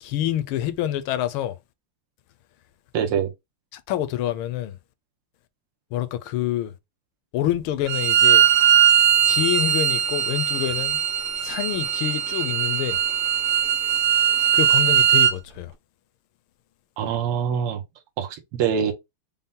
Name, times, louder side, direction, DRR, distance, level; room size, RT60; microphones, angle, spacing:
voice 1, 0.0-1.6 3.7-4.8 5.9-6.7 7.3-8.5 9.3-11.0 11.4-13.0 14.5-15.7, left 12 dB, 80° left, 1.3 m, -27 dB
voice 2, 2.9-3.3 17.0-17.8 18.2-18.9, right 7 dB, 85° right, 1.7 m, -24 dB
Bowed string instrument, 7.9-15.3, right 9 dB, 60° right, 1.1 m, -20 dB
5.4 x 2.0 x 3.6 m
omnidirectional pair, 2.4 m